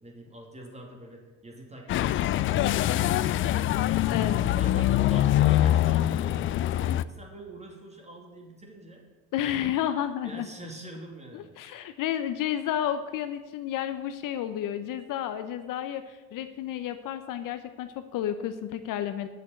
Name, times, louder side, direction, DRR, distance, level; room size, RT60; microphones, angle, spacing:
voice 1, 0.0-4.0 4.6-9.1 10.2-11.5, right 1 dB, 15° right, 1 dB, 2.8 m, -45 dB
sound 1, 1.9-7.0, left 13 dB, 30° left, 0.4 m, -24 dB
voice 2, 4.1-4.5 9.3-10.5 11.3-19.3, left 11 dB, 50° left, 10 dB, 0.8 m, -31 dB
8.7 x 6.6 x 8.6 m, 1.3 s
hypercardioid pair, 80°, 41 cm